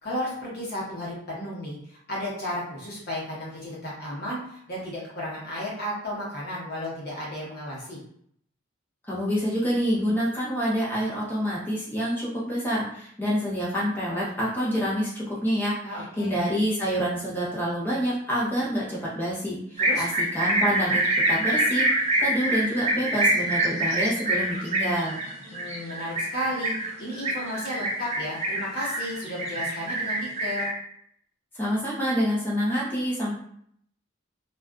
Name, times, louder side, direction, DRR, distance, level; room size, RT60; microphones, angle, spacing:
voice 1, 0.0-8.0 15.8-16.4 19.8-20.0 25.5-30.7, equal, 50° left, -5 dB, 0.9 m, -33 dB
voice 2, 9.1-15.8 16.2-21.0 21.3-25.2 31.5-33.3, equal, 10° left, -7 dB, 0.7 m, -27 dB
sound 1, 19.8-30.7, right 1 dB, 30° right, 0.4 m, -25 dB
2.4 x 2.3 x 2.3 m, 0.66 s
head